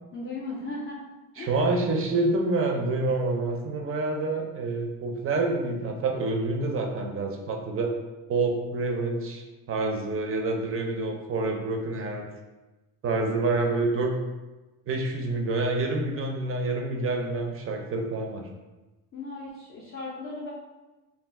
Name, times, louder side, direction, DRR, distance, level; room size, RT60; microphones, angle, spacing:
voice 1, 0.1-1.7 19.1-20.5, left 2 dB, 30° left, -5 dB, 0.5 m, -37 dB
voice 2, 1.4-7.9 8.3-12.2 13.0-14.1 14.9-18.5, right 2 dB, 35° right, 2 dB, 0.4 m, -27 dB
2.4 x 2.3 x 3.4 m, 1.1 s
cardioid pair, 115°, 41 cm